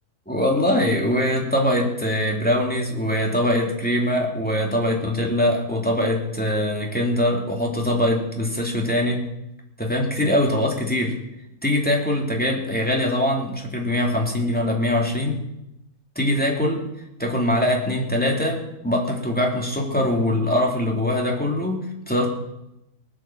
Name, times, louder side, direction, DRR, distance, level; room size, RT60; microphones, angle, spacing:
voice 1, 0.3-9.2 9.8-11.2 11.6-15.4 16.2-16.8 17.2-22.3, left 1 dB, 5° left, 0 dB, 2.7 m, -22 dB
19.0 x 9.2 x 7.5 m, 0.88 s
omnidirectional pair, 1.6 m